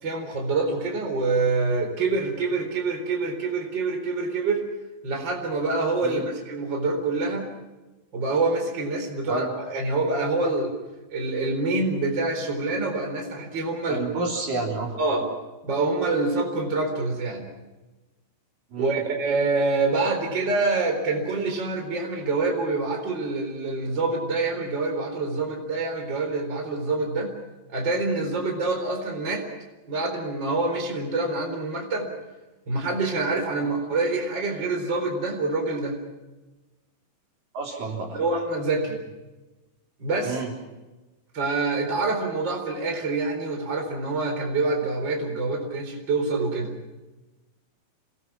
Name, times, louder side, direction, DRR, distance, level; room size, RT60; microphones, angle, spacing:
voice 1, 0.0-4.7 5.0-7.5 8.1-10.7 11.1-14.0 15.0-15.3 15.6-17.5 18.8-27.3 27.7-29.4 29.9-32.1 32.7-36.0 38.1-39.0 40.0-40.4 41.3-46.7, right 3 dB, 30° right, 4 dB, 4.4 m, -26 dB
voice 2, 13.9-14.9 18.7-19.0 37.5-38.2 40.2-40.5, right 3 dB, 60° right, 0 dB, 5.1 m, -30 dB
28.0 x 20.5 x 6.0 m, 1.1 s
omnidirectional pair, 4.5 m